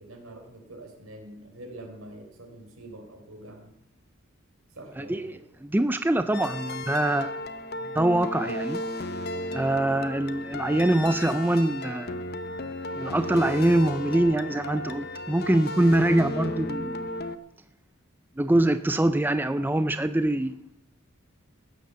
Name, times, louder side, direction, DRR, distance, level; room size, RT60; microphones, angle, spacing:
voice 1, 0.0-3.7 4.7-5.4, right 1 dB, 80° right, 3 dB, 3.8 m, -45 dB
voice 2, 5.0-7.4 7.8-9.1 9.5-12.3 13.0-17.0 18.4-20.6, right 1 dB, 10° right, 11 dB, 0.4 m, -24 dB
sound 1, 6.3-17.4, left 1 dB, 50° left, 0.8 m, -34 dB
15.5 x 9.0 x 6.9 m, 0.80 s
head